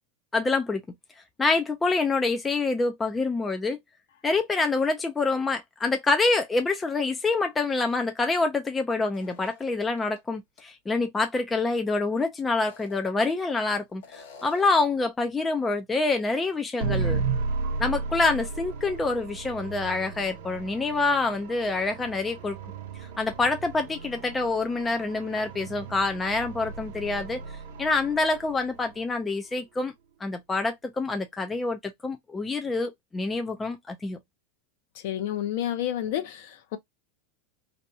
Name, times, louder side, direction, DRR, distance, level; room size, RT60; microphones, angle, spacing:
voice 1, 0.3-0.8 1.4-3.8 4.2-17.2 17.8-22.6 23.0-29.9 30.2-34.2, left 3 dB, 10° left, 0.3 m, -26 dB
sound 1, 9.1-10.2 10.6-10.7 12.5-13.6 14.0-14.9, left 5 dB, 75° left, 1.1 m, -49 dB
sound 2, 16.8-29.0, right 4 dB, 60° right, 0.7 m, -34 dB
voice 2, 35.0-36.8, left 11 dB, 55° left, 0.6 m, -30 dB
2.6 x 2.2 x 2.6 m
supercardioid pair, 170°, 0 cm